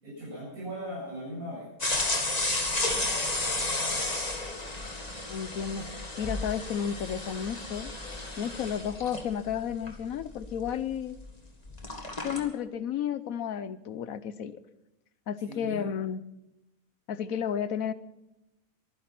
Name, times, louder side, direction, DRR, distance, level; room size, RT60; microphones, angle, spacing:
voice 1, 0.0-1.7 15.4-15.8, equal, 80° right, -6 dB, 8.2 m, -38 dB
sound 1, 1.8-11.4 11.7-12.4, left 2 dB, 30° left, 2.0 m, -32 dB
voice 2, 5.3-5.8 6.2-7.9 8.4-11.1 12.2-14.6 15.3-16.2 17.1-17.9, left 8 dB, 75° left, 15 dB, 1.3 m, -32 dB
23.5 x 10.5 x 5.9 m, 0.91 s
omnidirectional pair, 1.5 m